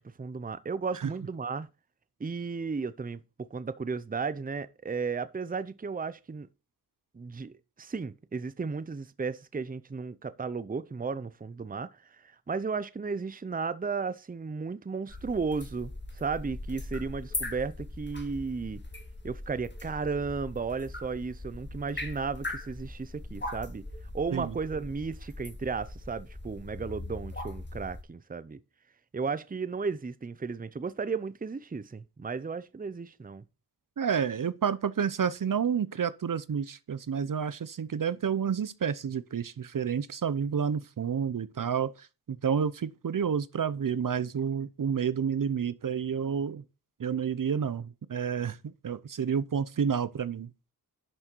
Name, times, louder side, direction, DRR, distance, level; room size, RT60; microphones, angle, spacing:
voice 1, 0.0-1.7 2.2-6.5 7.1-12.1 12.5-18.8 19.2-23.9 24.1-28.6 29.1-33.4, right 4 dB, 25° right, 0.6 m, -34 dB
sound 1, 15.1-28.0, left 2 dB, 30° left, 2.1 m, -40 dB
voice 2, 34.0-46.6 47.0-50.5, right 7 dB, 60° right, 0.7 m, -30 dB
11.0 x 6.4 x 4.5 m
cardioid pair, 55°, 38 cm